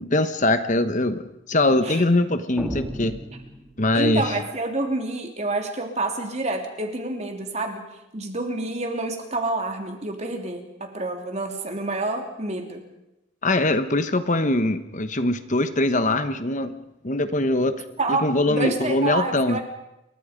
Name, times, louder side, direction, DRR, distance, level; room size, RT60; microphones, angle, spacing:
voice 1, 0.0-3.2 3.8-4.2 13.4-16.7 17.0-17.7 18.1-19.6, left 2 dB, 35° left, 10 dB, 1.1 m, -22 dB
sound 1, 2.6-4.2, equal, 5° right, 2.3 m, -34 dB
voice 2, 3.9-7.9 8.1-12.8 18.0-19.6, right 2 dB, 30° right, 4 dB, 3.1 m, -28 dB
28.5 x 23.0 x 5.2 m, 0.88 s
head